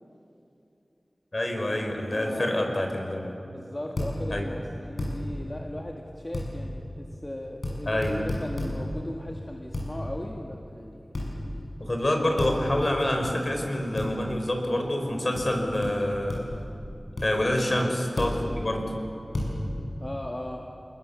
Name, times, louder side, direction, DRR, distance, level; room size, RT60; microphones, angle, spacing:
voice 1, 1.3-3.4 4.3-4.5 7.9-8.2 11.8-16.4 17.2-18.8, left 1 dB, 45° left, 3 dB, 4.6 m, -27 dB
voice 2, 2.1-2.5 3.5-11.0 17.7-17.9 20.0-20.6, left 1 dB, 25° left, 0 dB, 1.8 m, -38 dB
sound 1, 4.0-4.1 5.0-5.1 6.3-6.5 7.6-7.8 8.0-8.7 9.7-9.9 11.1-11.3 12.4-12.5 13.2-13.3 14.0-14.1 15.3-15.5 15.8-15.9 16.3-16.6 17.2-17.3 18.2-18.3 19.3-19.5, left 1 dB, 85° left, 6.9 m, -30 dB
28.5 x 20.5 x 7.1 m, 2.8 s
wide cardioid pair, 65°, 0 cm